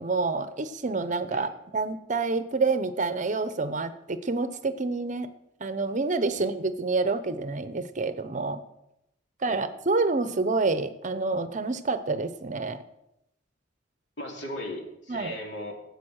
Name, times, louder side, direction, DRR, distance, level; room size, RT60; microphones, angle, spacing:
voice 1, 0.0-5.3 5.6-8.6 9.4-12.8 15.1-15.4, right 3 dB, 40° right, 12 dB, 0.8 m, -28 dB
voice 2, 14.2-15.7, left 1 dB, 65° left, 1 dB, 2.7 m, -37 dB
13.5 x 8.2 x 6.4 m, 0.85 s
head